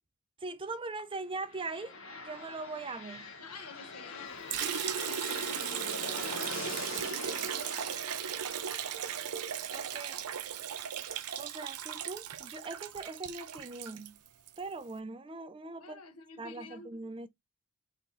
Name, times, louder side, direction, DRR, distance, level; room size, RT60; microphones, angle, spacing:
voice 1, 0.4-1.9 2.2-3.3 9.7-10.2 11.4-14.2 14.6-16.0 16.4-17.3, right 3 dB, 25° right, 0.5 m, -41 dB
sound 1, 1.4-11.2, left 3 dB, 55° left, 1.5 m, -44 dB
voice 2, 3.4-7.6 15.8-17.0, left 3 dB, 80° left, 1.1 m, -51 dB
Liquid, 4.5-14.6, right 9 dB, 85° right, 0.6 m, -37 dB
4.2 x 3.0 x 3.9 m
head